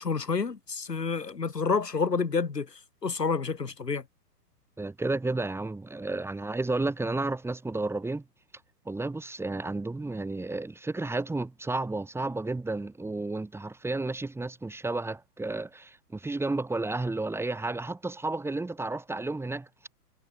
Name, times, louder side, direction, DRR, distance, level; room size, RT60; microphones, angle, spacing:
voice 1, 0.0-4.0, left 5 dB, 80° left, 3.3 m, -29 dB
voice 2, 4.8-8.2 8.9-19.9, right 2 dB, 5° right, 5.3 m, -32 dB
figure-of-eight pair, 115°, 48 cm